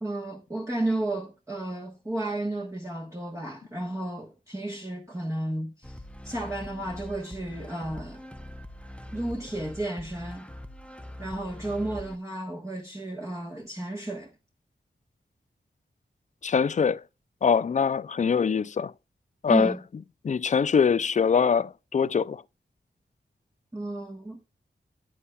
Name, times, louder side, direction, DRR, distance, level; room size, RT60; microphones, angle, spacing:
voice 1, 0.0-8.2 9.1-10.5 11.2-14.3 19.5-19.8 23.7-24.5, right 1 dB, 15° right, 1.2 m, -33 dB
sound 1, 5.8-12.2, left 1 dB, 5° left, 0.7 m, -43 dB
voice 2, 16.4-17.0 17.4-18.9 19.4-19.7 20.2-22.4, left 6 dB, 40° left, 0.4 m, -23 dB
9.7 x 8.3 x 2.3 m
wide cardioid pair, 90°, 19 cm